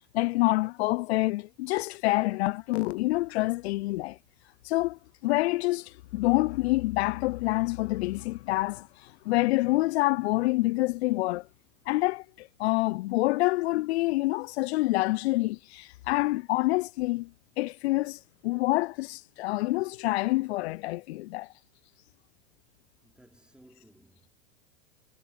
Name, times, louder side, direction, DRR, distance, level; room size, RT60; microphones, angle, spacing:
voice 1, 0.1-4.2 4.6-11.5 11.9-17.3 17.6-21.5, left 20 dB, 60° left, 0.5 m, -27 dB
voice 2, 8.0-8.5 11.8-11.9 23.0-24.3, right 1 dB, 5° right, 4.3 m, -60 dB
hypercardioid pair, 110°, 36 cm